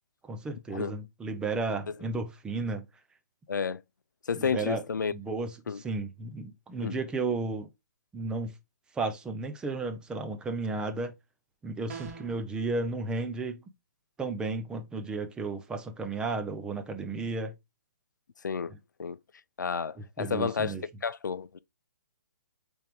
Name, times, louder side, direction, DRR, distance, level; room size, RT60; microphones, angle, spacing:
voice 1, 0.2-2.9 4.3-4.8 5.1-7.7 8.1-8.5 8.9-11.1 11.6-13.6 14.2-17.5 18.7-18.8 20.2-20.8, right 3 dB, 10° right, 0.6 m, -33 dB
voice 2, 3.5-3.8 4.3-5.1 5.7-5.8 6.8-7.0 18.4-18.7 19.0-19.2 19.6-20.8 21.0-21.6, left 6 dB, 90° left, 0.4 m, -31 dB
sound 1, 11.9-12.4, right 6 dB, 50° right, 1.8 m, -42 dB
8.8 x 3.5 x 3.1 m
hypercardioid pair, 145°, 10 cm